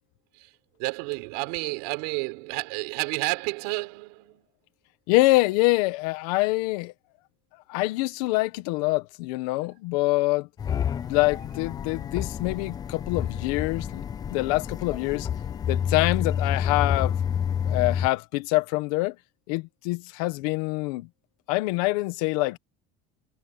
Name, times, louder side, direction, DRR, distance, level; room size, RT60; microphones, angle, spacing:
voice 1, 0.8-4.4, right 29 dB, 80° right, 4.9 m, -30 dB
voice 2, 5.1-6.9 7.7-10.5 11.1-14.0 14.3-15.3 15.7-17.1 17.7-19.1 19.5-21.1 21.5-22.6, left 22 dB, 90° left, 1.5 m, -25 dB
sound 1, 10.6-18.1, left 8 dB, 20° left, 0.6 m, -29 dB
cardioid pair, 170°, 19 cm